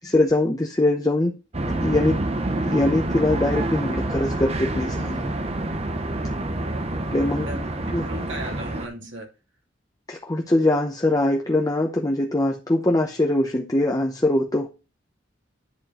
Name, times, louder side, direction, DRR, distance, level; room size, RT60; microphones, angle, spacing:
voice 1, 0.0-1.3 1.8-2.2 2.7-5.3 7.1-7.5 7.9-8.0 10.1-14.7, left 1 dB, 20° left, 2 dB, 0.8 m, -22 dB
sound 1, 1.5-8.9, right 1 dB, 35° right, 0.8 m, -27 dB
voice 2, 6.3-6.9 7.4-7.7 8.0-9.3, right 1 dB, 80° right, 1 dB, 2.6 m, -37 dB
10.0 x 4.4 x 4.2 m, 0.30 s
head